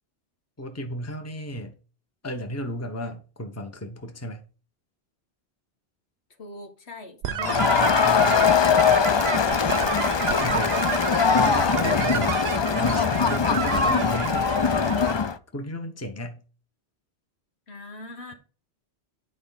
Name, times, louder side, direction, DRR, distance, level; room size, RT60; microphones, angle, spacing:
voice 1, 0.6-1.7 2.2-4.4 7.3-9.8 10.4-10.7 11.3-12.4 12.7-14.5 15.5-16.4, equal, 15° left, 1.2 m, -34 dB
voice 2, 6.4-7.7 11.5-11.6 13.8-14.2 17.7-18.3, left 1 dB, 70° left, 1.8 m, -40 dB
sound 1, 7.2-15.1, right 9 dB, 65° right, 0.9 m, -30 dB
Crowd, 7.4-15.4, left 6 dB, 50° left, 0.3 m, -22 dB
9.7 x 5.1 x 4.0 m
omnidirectional pair, 1.1 m